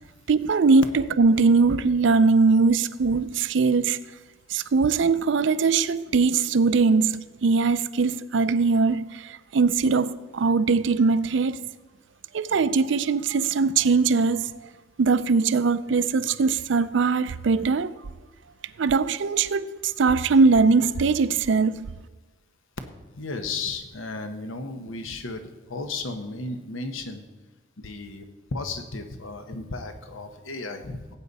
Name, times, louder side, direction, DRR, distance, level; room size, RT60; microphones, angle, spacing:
voice 1, 0.3-4.0 4.5-11.6 12.3-14.7 15.0-17.9 18.8-21.9, right 4 dB, 65° right, 0.4 m, -21 dB
voice 2, 23.2-25.4 25.7-27.2 27.8-28.2 28.5-31.2, left 3 dB, 80° left, 1.0 m, -34 dB
17.5 x 8.3 x 4.1 m
head